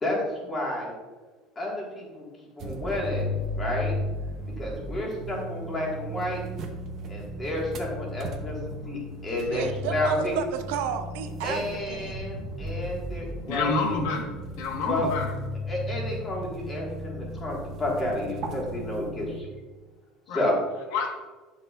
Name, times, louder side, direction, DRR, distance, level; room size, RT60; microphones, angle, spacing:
voice 1, 0.0-0.9 1.6-2.3 2.6-3.9 4.6-6.4 7.1-8.6 8.8-10.4 11.4-14.0 14.8-15.1 15.7-19.5 20.3-20.6, left 1 dB, 20° left, -3 dB, 1.8 m, -31 dB
sound 1, 2.6-19.4, left 1 dB, 40° right, 0.9 m, -35 dB
voice 2, 9.5-11.6 11.9-12.2, right 8 dB, 90° right, 7 dB, 0.6 m, -31 dB
voice 3, 13.5-15.3 20.3-20.4 20.9-21.1, left 4 dB, 80° left, 1 dB, 1.4 m, -28 dB
9.1 x 5.9 x 2.5 m, 1.3 s
cardioid pair, 155°, 0 cm